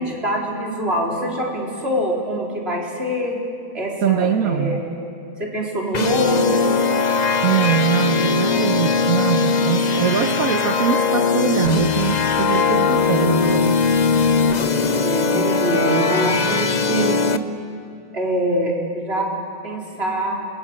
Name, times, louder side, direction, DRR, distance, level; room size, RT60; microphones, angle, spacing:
voice 1, 0.0-3.4 3.7-4.8 5.4-6.7 9.8-10.0 14.9-17.2 18.1-19.3 19.6-20.5, equal, 45° right, -2 dB, 4.4 m, -24 dB
voice 2, 4.0-4.8 7.4-13.8, right 9 dB, 90° right, 7 dB, 1.4 m, -22 dB
sound 1, 5.9-17.4, left 4 dB, 35° left, 0.8 m, -20 dB
27.5 x 21.5 x 8.9 m, 2.7 s
omnidirectional pair, 1.4 m